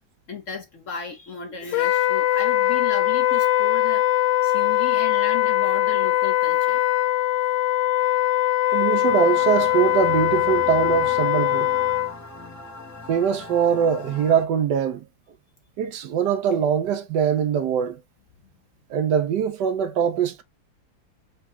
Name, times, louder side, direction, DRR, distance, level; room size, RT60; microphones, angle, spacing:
voice 1, 0.3-4.1 4.4-6.8, left 6 dB, 50° left, 1.0 m, -35 dB
Wind instrument woodwind instrument, 1.7-12.1, left 13 dB, 85° left, 1.3 m, -21 dB
voice 2, 8.7-11.7 13.1-15.0 15.8-18.0 18.9-20.4, right 8 dB, 70° right, 1.3 m, -22 dB
sound 1, 9.1-14.4, left 2 dB, 15° left, 0.6 m, -40 dB
4.9 x 2.4 x 4.3 m
omnidirectional pair, 2.0 m